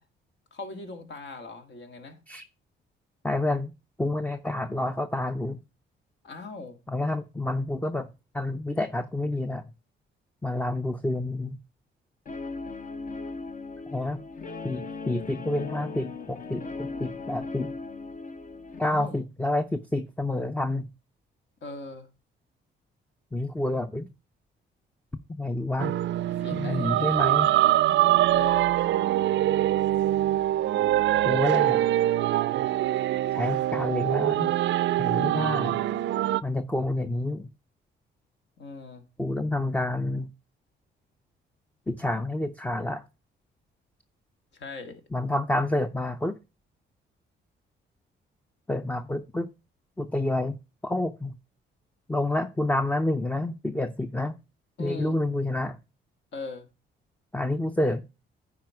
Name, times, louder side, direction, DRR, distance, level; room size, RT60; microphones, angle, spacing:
voice 1, 0.5-2.2 6.2-6.8 18.8-19.2 21.6-22.1 26.2-27.2 28.3-28.7 38.6-39.0 44.5-45.0 54.8-55.2 56.3-56.7, left 3 dB, 65° left, 1.8 m, -40 dB
voice 2, 3.2-3.7 4.0-5.6 6.9-8.1 8.3-9.7 10.4-11.6 13.9-14.2 14.6-17.7 18.8-20.9 23.3-24.1 25.4-26.0 26.5-27.5 31.2-31.8 33.3-34.5 35.0-35.8 36.4-37.5 39.2-40.3 41.9-43.0 45.1-46.4 48.7-49.5 50.0-51.3 52.1-54.4 54.8-55.8 57.3-58.0, left 1 dB, 5° left, 0.5 m, -28 dB
Guitar, 12.3-18.8, left 4 dB, 40° left, 0.9 m, -38 dB
sound 1, 25.8-36.4, right 14 dB, 65° right, 0.4 m, -24 dB
9.5 x 4.4 x 4.7 m
cardioid pair, 90°, 20 cm